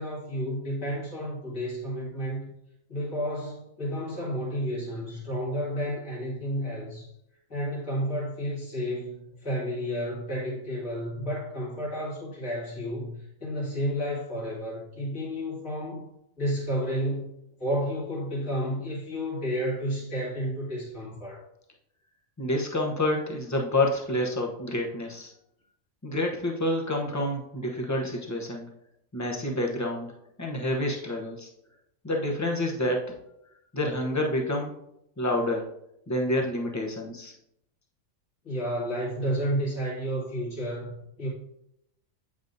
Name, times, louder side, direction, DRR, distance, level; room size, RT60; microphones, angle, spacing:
voice 1, 0.0-2.5 2.9-7.1 7.5-13.1 13.4-16.1 16.4-17.3 17.6-21.4 38.4-40.9 41.2-41.3, equal, 70° left, -7 dB, 3.0 m, -31 dB
voice 2, 22.4-25.3 26.0-28.7 29.1-30.1 30.4-31.5 32.0-33.0 33.7-34.7 35.2-35.7 36.1-37.3, left 1 dB, 15° left, 0 dB, 0.6 m, -28 dB
7.9 x 5.4 x 2.6 m, 0.79 s
omnidirectional pair, 1.4 m